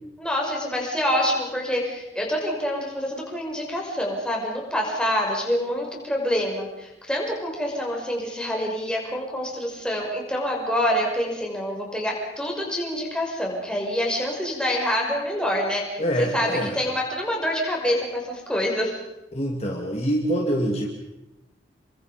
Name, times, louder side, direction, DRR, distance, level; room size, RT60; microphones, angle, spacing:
voice 1, 0.2-18.9, equal, 5° left, -2 dB, 6.1 m, -26 dB
voice 2, 16.0-16.8 19.3-20.9, equal, 35° left, 0 dB, 2.7 m, -25 dB
30.0 x 23.5 x 5.2 m, 0.96 s
head